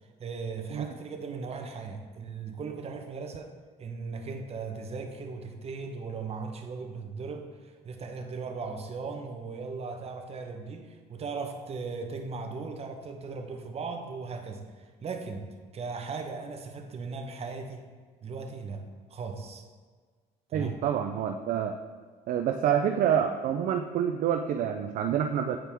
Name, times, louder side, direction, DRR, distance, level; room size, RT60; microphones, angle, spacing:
voice 1, 0.2-3.5 3.8-15.5 15.7-17.9 18.2-19.7 20.5-20.8, right 4 dB, 35° right, 5 dB, 0.8 m, -38 dB
voice 2, 20.5-21.7 22.3-25.6, right 9 dB, 55° right, 6 dB, 0.4 m, -27 dB
8.8 x 4.5 x 3.4 m, 1.5 s
cardioid pair, 110°, 17 cm